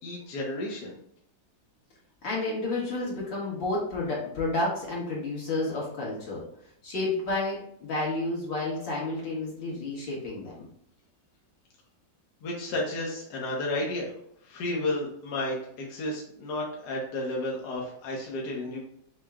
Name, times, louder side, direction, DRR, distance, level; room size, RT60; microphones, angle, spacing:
voice 1, 0.0-1.0 12.4-14.1 14.4-18.8, left 1 dB, 65° left, -2 dB, 1.5 m, -32 dB
voice 2, 2.2-6.4 6.8-10.7, left 2 dB, 85° left, -5 dB, 2.3 m, -31 dB
6.4 x 2.2 x 3.6 m, 0.70 s
omnidirectional pair, 2.0 m